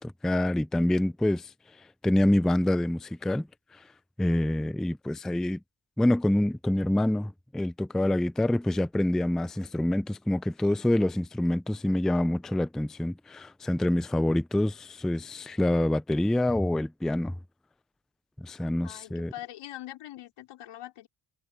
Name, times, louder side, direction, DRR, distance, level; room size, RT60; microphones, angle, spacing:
voice 1, 0.0-1.5 2.0-3.5 4.2-5.6 6.0-17.3 18.4-19.3, left 1 dB, ahead, 0.4 m, -26 dB
voice 2, 18.8-21.1, left 14 dB, 90° left, 3.8 m, -43 dB
cardioid pair, 85°, 50 cm